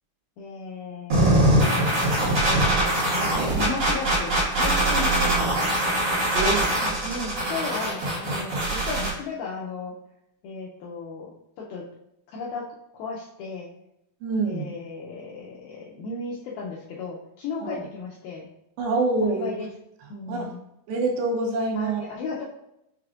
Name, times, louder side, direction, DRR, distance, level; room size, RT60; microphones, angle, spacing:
voice 1, 0.4-1.8 3.1-5.8 6.8-9.9 10.4-11.3 11.6-11.8 12.3-12.6 12.9-13.7 14.4-18.5 19.2-19.7 20.1-20.6 21.7-22.4, left 4 dB, 90° left, -4 dB, 2.2 m, -35 dB
sound 1, 1.1-9.1, right 1 dB, 45° right, 2.4 m, -22 dB
voice 2, 6.3-7.0 14.2-14.7 17.6-17.8 18.8-19.5 20.3-20.5 20.9-22.0, right 3 dB, 80° right, 1 dB, 2.8 m, -26 dB
6.5 x 3.4 x 2.4 m, 0.82 s
omnidirectional pair, 4.9 m